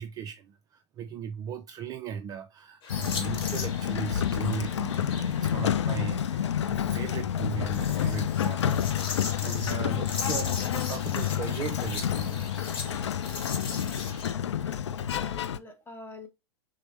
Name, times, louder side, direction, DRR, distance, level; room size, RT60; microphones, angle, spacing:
voice 1, 0.0-12.8 13.1-13.5, right 7 dB, 25° right, 0.3 m, -38 dB
sound 1, 2.8-5.8 7.4-14.3, left 4 dB, 35° left, 1.3 m, -39 dB
Sliding door, 2.9-15.6, left 9 dB, 75° left, 0.4 m, -29 dB
voice 2, 14.6-16.3, left 3 dB, 15° left, 0.9 m, -45 dB
5.9 x 2.0 x 3.0 m
figure-of-eight pair, 100°, 15 cm